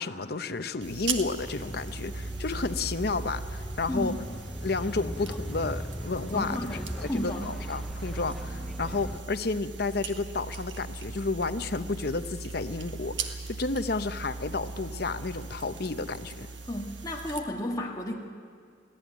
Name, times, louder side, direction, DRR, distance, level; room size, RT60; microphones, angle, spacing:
voice 1, 0.0-4.1 4.6-6.6 7.0-16.5, left 3 dB, 55° left, 10 dB, 0.8 m, -31 dB
sound 1, 0.8-17.4, right 4 dB, 80° right, 1.6 m, -39 dB
Bus, 1.4-9.2, equal, ahead, 0.5 m, -40 dB
sound 2, 2.5-4.4, equal, 25° right, 4.9 m, -50 dB
voice 2, 6.3-7.5 16.7-18.1, left 1 dB, 20° left, -2 dB, 1.7 m, -32 dB
23.0 x 16.5 x 9.3 m, 2.2 s
head